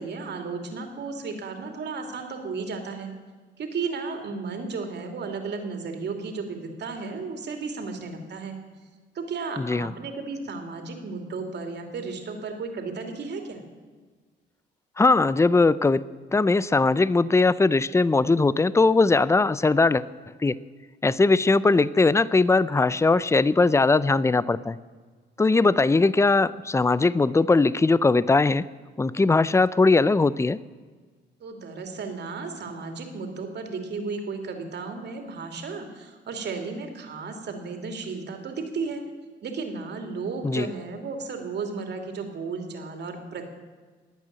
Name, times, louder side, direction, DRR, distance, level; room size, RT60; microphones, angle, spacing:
voice 1, 0.0-3.1 3.6-8.6 9.1-13.6 31.4-39.0 39.4-43.5, right 4 dB, 60° right, 4 dB, 2.9 m, -34 dB
voice 2, 9.6-9.9 15.0-16.0 16.3-20.0 20.4-20.6 21.0-24.8 25.4-28.7 29.0-30.6 40.4-40.7, left 3 dB, 15° left, 18 dB, 0.5 m, -20 dB
20.5 x 8.8 x 7.7 m, 1.5 s
cardioid pair, 90°, 20 cm